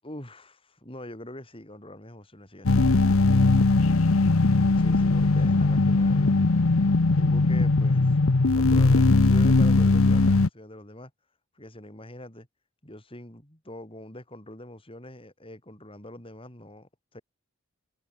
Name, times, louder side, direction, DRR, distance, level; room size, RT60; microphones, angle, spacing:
voice 1, 0.0-3.3 4.8-6.4 7.1-8.0 8.5-11.1 11.6-12.5 12.8-17.2, left 1 dB, 25° left, 5.9 m, -44 dB
sound 1, 2.7-10.5, left 3 dB, 85° left, 0.9 m, -20 dB
head